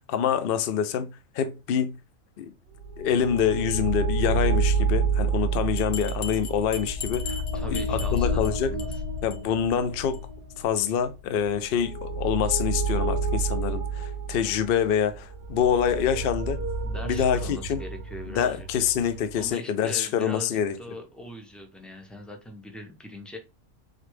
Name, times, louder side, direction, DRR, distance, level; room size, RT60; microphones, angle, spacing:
voice 1, 0.0-2.0 2.4-2.5 3.0-8.7 9.2-10.2 10.6-16.6 17.0-17.8 18.3-20.7, left 8 dB, 60° left, 0.6 m, -26 dB
sound 1, 2.8-19.5, right 3 dB, 50° right, 1.0 m, -29 dB
Bell, 5.8-8.5 8.8-9.0 9.3-9.4 9.7-9.8 10.1-10.2, left 6 dB, 90° left, 1.2 m, -38 dB
voice 2, 7.5-9.0 16.8-18.7 19.4-23.4, left 1 dB, ahead, 0.5 m, -41 dB
3.9 x 3.3 x 3.2 m
omnidirectional pair, 1.4 m